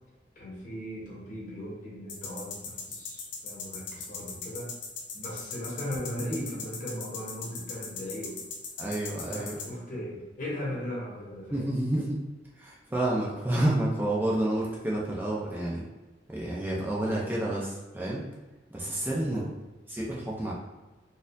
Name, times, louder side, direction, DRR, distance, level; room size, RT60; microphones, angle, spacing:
voice 1, 0.4-4.7 5.1-8.4 8.8-9.0 9.2-11.7 19.2-19.5, left 1 dB, 45° left, -4 dB, 1.0 m, -38 dB
sound 1, 2.1-9.6, left 5 dB, 80° left, 0.7 m, -38 dB
voice 2, 8.8-9.6 11.5-12.2 12.6-15.8 16.3-18.2 18.7-19.4 19.9-20.5, right 1 dB, 10° right, -5 dB, 0.4 m, -29 dB
4.1 x 2.4 x 2.6 m, 1.2 s
head